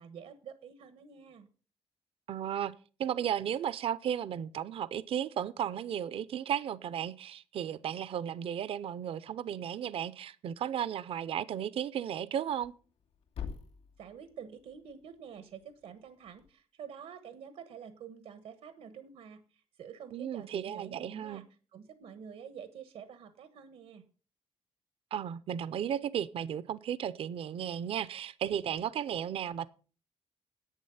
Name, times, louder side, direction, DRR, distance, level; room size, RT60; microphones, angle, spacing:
voice 1, 0.0-1.5 14.0-21.5 21.7-24.0, right 7 dB, 85° right, 1.2 m, -48 dB
voice 2, 2.3-2.7 3.0-12.7 20.1-21.4 25.1-29.7, right 9 dB, 60° right, 0.5 m, -34 dB
Thump thud, 12.4-16.5, left 7 dB, 75° left, 2.6 m, -48 dB
11.0 x 8.5 x 5.6 m
cardioid pair, 135°, 11 cm